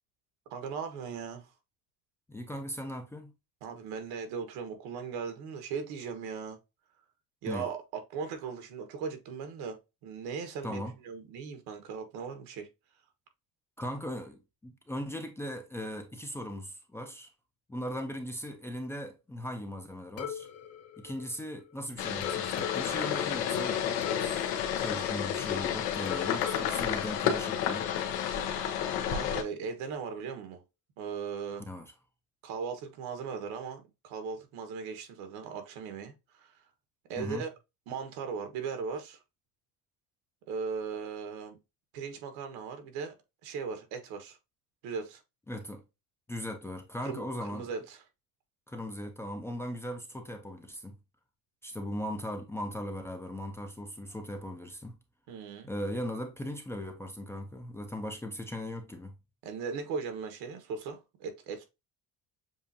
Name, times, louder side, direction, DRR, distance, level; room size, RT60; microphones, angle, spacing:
voice 1, 0.5-1.5 3.6-6.6 7.4-12.7 29.1-30.6 31.0-31.7 32.4-36.6 37.1-37.5 37.9-39.2 40.5-41.6 41.9-43.1 43.4-44.4 44.8-45.2 47.0-48.0 55.3-55.7 59.4-61.6, right 5 dB, 80° right, 1.5 m, -38 dB
voice 2, 2.3-3.3 7.5-7.7 10.6-10.9 13.8-17.3 17.7-20.5 21.0-24.5 24.8-27.9 31.7-31.9 37.2-37.4 45.5-45.8 46.3-47.7 48.7-51.0 51.6-55.0 55.7-59.1, equal, 5° left, 0.5 m, -38 dB
sound 1, 20.2-21.8 22.2-25.6 26.1-28.0, left 9 dB, 40° left, 0.8 m, -41 dB
sound 2, 22.0-29.4, left 9 dB, 85° left, 1.0 m, -31 dB
7.1 x 2.5 x 2.7 m
cardioid pair, 160°, 36 cm